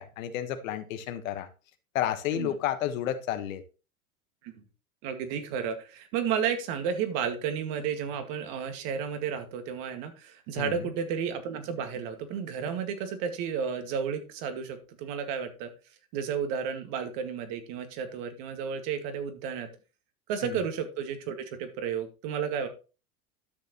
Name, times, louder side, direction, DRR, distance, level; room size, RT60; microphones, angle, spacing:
voice 1, 0.0-1.5 1.9-3.6 10.6-10.8 20.4-20.5, left 11 dB, 65° left, 9 dB, 1.5 m, -31 dB
voice 2, 5.0-15.7 16.1-19.7 20.3-22.7, right 7 dB, 55° right, 7 dB, 2.2 m, -32 dB
12.5 x 6.7 x 3.1 m, 0.33 s
hypercardioid pair, 95°, 43 cm